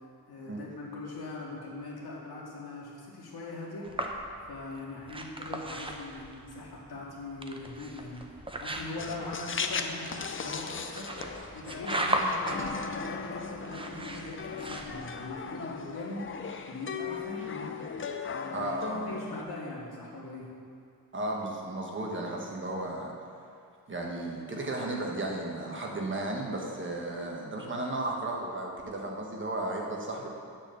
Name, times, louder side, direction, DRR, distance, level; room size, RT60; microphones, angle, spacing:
voice 1, 0.3-3.9 4.5-11.1 11.5-16.3 16.7-17.7 18.3-18.7 19.1-20.5, left 2 dB, 80° left, -4 dB, 2.0 m, -41 dB
sound 1, 3.8-15.3, right 1 dB, 15° right, 0.6 m, -37 dB
sound 2, 9.0-19.4, left 5 dB, 35° left, 0.4 m, -37 dB
voice 2, 18.5-19.0 21.1-23.1 23.9-30.3, right 2 dB, 30° right, -1 dB, 1.2 m, -34 dB
9.7 x 4.3 x 6.7 m, 2.5 s
wide cardioid pair, 150°, 37 cm